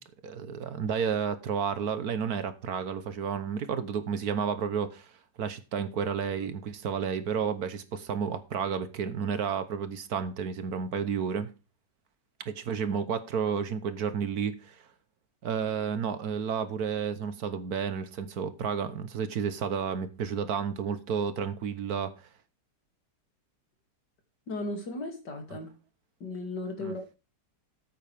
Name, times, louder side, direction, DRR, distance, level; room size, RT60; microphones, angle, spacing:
voice 1, 0.0-5.1 5.4-11.5 12.5-14.8 15.4-22.3 26.8-26.9, right 7 dB, 65° right, 1.4 m, -31 dB
voice 2, 24.5-25.7 26.2-27.2, left 2 dB, 75° left, 3.2 m, -36 dB
13.0 x 8.6 x 3.5 m
omnidirectional pair, 1.9 m